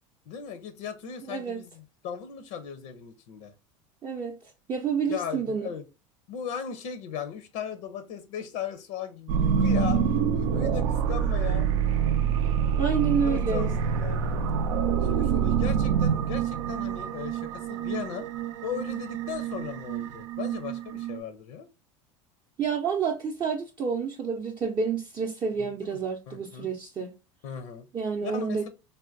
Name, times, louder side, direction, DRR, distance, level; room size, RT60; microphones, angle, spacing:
voice 1, 0.3-3.5 5.1-5.8 6.3-10.0 10.3-11.7 13.1-14.3 15.0-18.3 18.6-21.7 25.6-26.0 26.3-26.7 27.4-27.9 28.2-28.7, left 7 dB, 70° left, 0.6 m, -37 dB
voice 2, 1.2-1.6 4.0-4.4 4.7-5.7 12.4-12.5 12.8-13.7 22.6-27.1 27.9-28.7, right 6 dB, 30° right, 0.5 m, -29 dB
sound 1, 9.3-21.2, right 7 dB, 80° right, 0.4 m, -26 dB
3.4 x 2.2 x 2.5 m
hypercardioid pair, 95°, 16 cm